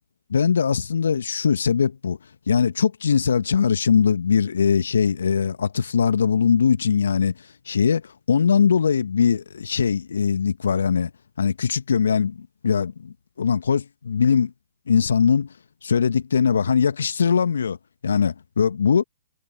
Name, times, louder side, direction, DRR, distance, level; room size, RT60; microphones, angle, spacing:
voice 1, 0.3-2.2 2.5-7.3 7.7-11.1 11.4-14.5 14.9-15.5 15.8-17.8 18.0-19.0, left 6 dB, 70° left, 1.3 m, -21 dB
figure-of-eight pair, 120°, 0 cm